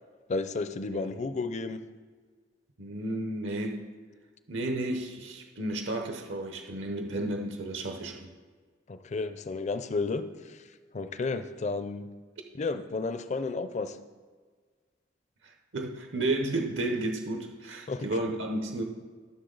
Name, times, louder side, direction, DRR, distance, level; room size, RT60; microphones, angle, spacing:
voice 1, 0.3-1.8 8.9-10.6 10.9-12.1 12.6-14.0 17.9-18.1, left 3 dB, 40° left, 11 dB, 0.5 m, -32 dB
voice 2, 2.8-3.8 4.5-8.3 15.4-18.8, right 2 dB, 80° right, 4 dB, 0.9 m, -32 dB
13.5 x 6.6 x 3.9 m, 1.5 s
head